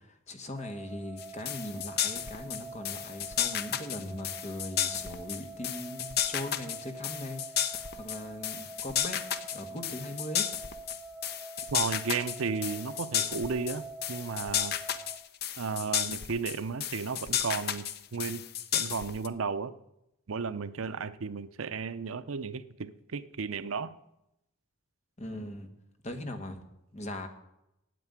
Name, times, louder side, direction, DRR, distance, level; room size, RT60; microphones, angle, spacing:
voice 1, 0.3-9.2 9.5-10.4 25.2-25.7 26.0-26.6 26.9-27.3, left 1 dB, 35° left, 6 dB, 1.4 m, -40 dB
sound 1, 0.5-15.2, right 2 dB, 5° right, 0.7 m, -46 dB
sound 2, 1.2-19.3, left 10 dB, 50° left, 0.7 m, -33 dB
voice 2, 11.7-14.8 15.6-17.9 18.1-18.5 18.7-19.7 20.3-23.9, right 5 dB, 80° right, 14 dB, 0.6 m, -34 dB
9.2 x 8.2 x 9.3 m, 0.85 s
head